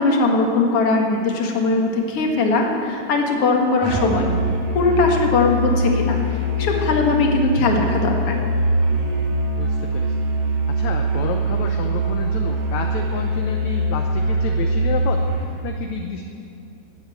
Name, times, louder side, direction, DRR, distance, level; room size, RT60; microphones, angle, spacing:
voice 1, 0.0-4.3 4.7-6.2 6.6-8.4, left 3 dB, 50° left, 1 dB, 2.3 m, -19 dB
Musical instrument, 3.8-15.5, right 1 dB, 75° right, 3.4 m, -22 dB
voice 2, 9.6-10.3 10.7-15.3 15.6-16.2, left 7 dB, 70° left, 3 dB, 1.9 m, -30 dB
18.5 x 8.0 x 7.9 m, 2.5 s
omnidirectional pair, 3.9 m